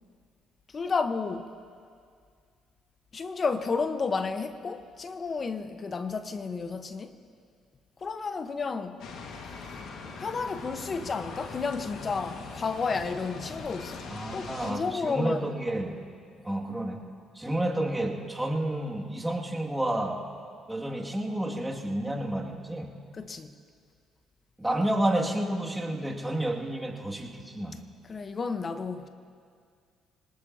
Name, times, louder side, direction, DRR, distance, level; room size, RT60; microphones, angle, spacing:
voice 1, 0.7-1.5 3.1-7.1 8.0-9.0 10.2-14.0 14.3-15.5 23.1-23.5 28.1-29.1, left 4 dB, 40° left, 1.1 m, -31 dB
sound 1, 9.0-14.7, left 4 dB, 65° left, 1.8 m, -41 dB
voice 2, 14.1-16.0 16.4-17.1 17.4-20.2 20.7-23.0 24.6-27.8, right 1 dB, 10° right, 2.3 m, -30 dB
25.5 x 19.0 x 2.9 m
supercardioid pair, 60°, 0 cm